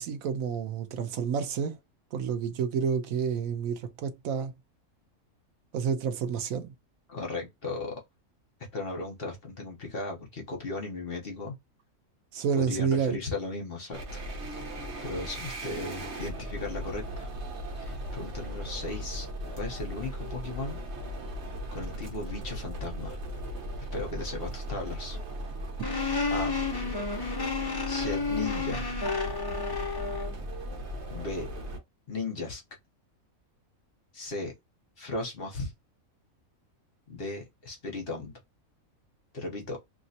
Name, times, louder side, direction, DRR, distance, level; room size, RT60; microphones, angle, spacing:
voice 1, 0.0-1.8 2.1-4.5 5.7-6.7 12.3-13.2, right 7 dB, 75° right, 1.1 m, -29 dB
voice 2, 7.1-8.0 8.7-11.5 12.5-14.2 15.0-17.3 17.8-19.3 19.5-20.8 21.7-23.2 23.9-25.2 26.3-26.6 27.9-28.9 31.1-31.5 32.1-32.6 34.1-34.5 35.0-35.7 37.1-38.3 39.3-39.8, left 3 dB, 45° left, 1.1 m, -36 dB
sound 1, 13.9-31.8, right 1 dB, 55° right, 1.3 m, -37 dB
sound 2, 25.8-30.4, left 4 dB, 25° left, 0.6 m, -31 dB
3.0 x 2.9 x 2.7 m
omnidirectional pair, 1.5 m